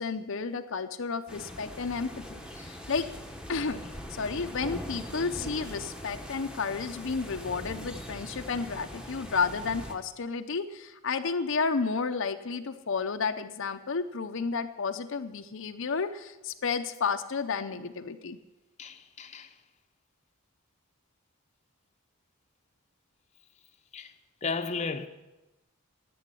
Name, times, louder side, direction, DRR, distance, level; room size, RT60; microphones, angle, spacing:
voice 1, 0.0-3.1 3.5-3.8 4.1-18.4, left 4 dB, 65° left, 0.7 m, -32 dB
sound 1, 1.3-10.0, equal, 5° right, 1.2 m, -42 dB
voice 2, 18.8-19.6 23.9-24.1 24.4-25.1, left 4 dB, 35° left, 0.8 m, -34 dB
10.5 x 8.5 x 9.8 m
head